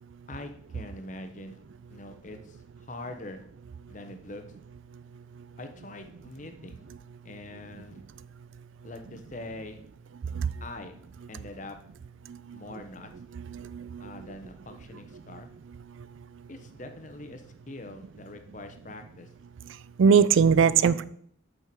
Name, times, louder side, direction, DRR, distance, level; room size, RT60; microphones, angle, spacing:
voice 1, 0.3-1.6 1.9-3.4 3.9-4.4 5.6-6.8 7.2-8.0 8.8-9.8 10.6-11.0 11.3-11.8 12.5-13.1 14.0-15.5 16.5-19.3, left 2 dB, 40° left, 7 dB, 0.9 m, -43 dB
voice 2, 13.5-14.0 20.0-21.0, right 6 dB, 75° right, 17 dB, 0.4 m, -20 dB
8.5 x 5.7 x 4.6 m, 0.65 s
head